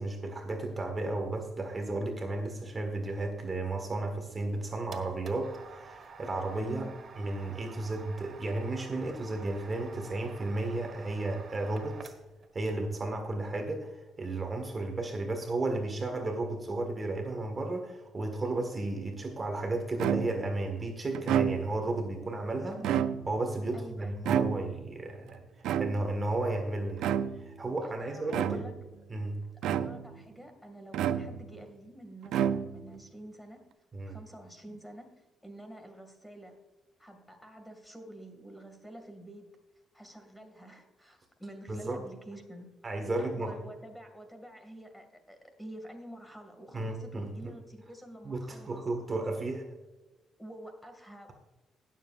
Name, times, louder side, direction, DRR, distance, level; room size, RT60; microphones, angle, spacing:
voice 1, 0.0-6.8 7.2-12.1 12.5-22.8 23.3-25.4 25.8-27.1 27.3-28.6 29.1-29.4 33.9-34.2 41.7-42.0 42.8-43.5 46.7-47.5 48.2-49.6, right 2 dB, 30° right, 4 dB, 1.7 m, -33 dB
sound 1, 4.4-12.5, right 5 dB, 50° right, 1.5 m, -50 dB
sound 2, 20.0-20.6 21.1-21.9 22.7-23.5 24.3-24.9 25.6-26.3 27.0-27.5 28.3-28.9 29.6-30.2 30.9-31.6 32.3-33.0, right 9 dB, 85° right, 0.5 m, -30 dB
voice 2, 23.7-24.3 27.8-28.7 29.6-33.6 34.1-36.6 37.0-39.5 39.9-42.7 43.0-48.8 50.4-51.3, right 1 dB, 5° left, 5 dB, 2.2 m, -48 dB
19.0 x 7.4 x 2.5 m, 1.2 s
cardioid pair, 90°, 0 cm